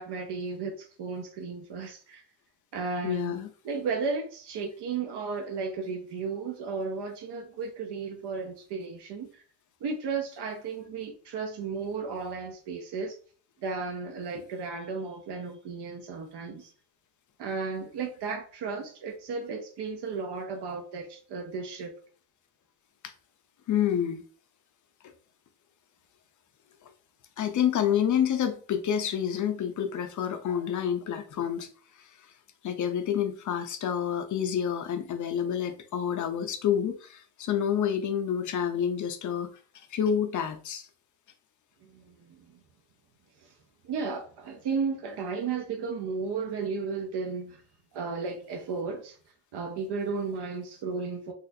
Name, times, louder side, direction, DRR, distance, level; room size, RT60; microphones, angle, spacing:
voice 1, 0.0-2.2 2.7-3.4 3.6-9.3 9.8-13.2 13.6-16.7 17.4-21.9 41.8-42.6 43.4-43.5 43.8-47.6 47.9-49.2 49.5-51.3, right 4 dB, 70° right, 0.8 m, -34 dB
voice 2, 3.0-3.5 14.3-14.4 23.7-24.2 27.4-31.7 32.6-39.5 39.7-40.9, left 9 dB, 45° left, 0.5 m, -28 dB
4.1 x 2.4 x 2.6 m
cardioid pair, 160°, 42 cm